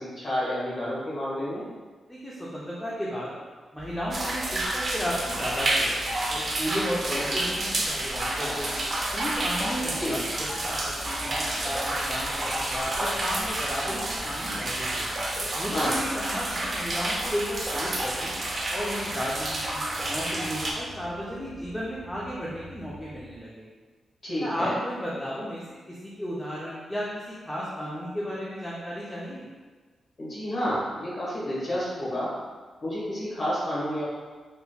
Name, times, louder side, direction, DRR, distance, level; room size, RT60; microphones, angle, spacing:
voice 1, 0.0-1.6 10.0-10.2 15.7-15.9 24.2-24.8 30.2-32.3 32.8-34.0, equal, 40° left, -7 dB, 1.3 m, -30 dB
voice 2, 2.1-3.3 3.7-5.9 6.3-8.7 9.1-15.1 15.5-18.3 18.7-23.6 24.4-27.1 27.5-29.4, equal, 10° left, -7 dB, 0.5 m, -34 dB
sound 1, 3.8-23.4, equal, 85° left, 0.5 m, -46 dB
sound 2, 4.1-20.7, right 1 dB, 40° right, 0.5 m, -29 dB
3.3 x 2.9 x 2.3 m, 1.4 s
cardioid pair, 105°, 0 cm